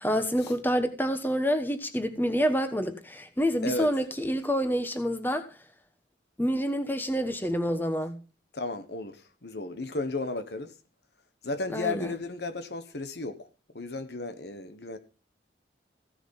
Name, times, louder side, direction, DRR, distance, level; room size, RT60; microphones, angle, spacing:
voice 1, 0.0-5.4 6.4-8.2 11.7-12.1, equal, 10° left, 1.1 m, -27 dB
voice 2, 8.5-10.7 11.4-13.5 13.7-15.0, left 2 dB, 65° left, 1.3 m, -34 dB
15.5 x 7.1 x 5.8 m
head